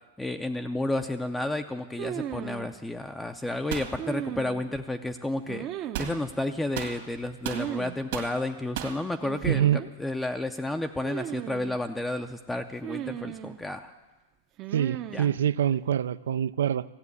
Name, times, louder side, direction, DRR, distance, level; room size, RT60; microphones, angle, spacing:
voice 1, 0.2-5.7 6.0-13.9 15.1-15.3, left 1 dB, 5° left, 6 dB, 0.5 m, -31 dB
sound 1, 2.0-2.7 4.0-4.8 5.5-6.2 7.5-8.0 8.2-8.3 9.2-9.9 11.0-11.8 12.8-13.6 14.6-15.3, right 11 dB, 35° right, 0.6 m, -36 dB
sound 2, 3.7-3.9 5.9-6.2 6.7-7.7 8.1-8.4 8.7-9.0, right 10 dB, 65° right, 1.7 m, -34 dB
voice 2, 9.4-9.8 14.7-16.9, right 10 dB, 80° right, 18 dB, 0.4 m, -25 dB
14.5 x 7.5 x 8.2 m, 1.2 s
hypercardioid pair, 135°, 0 cm